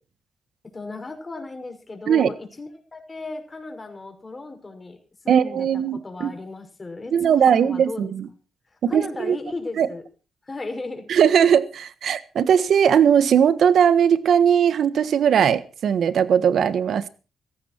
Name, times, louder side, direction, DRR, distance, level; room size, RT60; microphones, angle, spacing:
voice 1, 0.6-5.0 5.2-8.4 8.7-10.0 10.4-11.1, left 3 dB, 30° left, 5.9 m, -36 dB
voice 2, 5.3-6.3 7.1-8.3 8.8-9.4 9.8-9.9 11.1-17.1, right 8 dB, 70° right, 1.4 m, -19 dB
16.5 x 14.5 x 4.5 m
cardioid pair, 70°, 0 cm